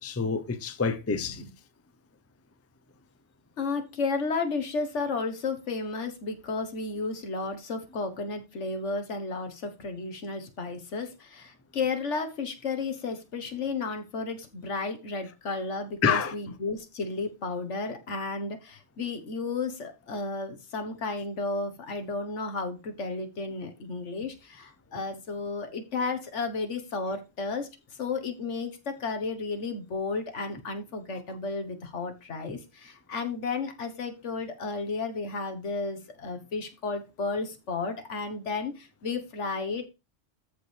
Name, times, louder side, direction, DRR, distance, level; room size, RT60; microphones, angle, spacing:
voice 1, 0.0-1.4 15.2-15.3 16.0-16.6 24.9-25.0 32.5-32.6, left 5 dB, 15° left, 0.5 m, -28 dB
voice 2, 3.6-27.7 28.0-39.9, left 4 dB, 75° left, 1.6 m, -33 dB
13.5 x 4.9 x 3.3 m
omnidirectional pair, 1.2 m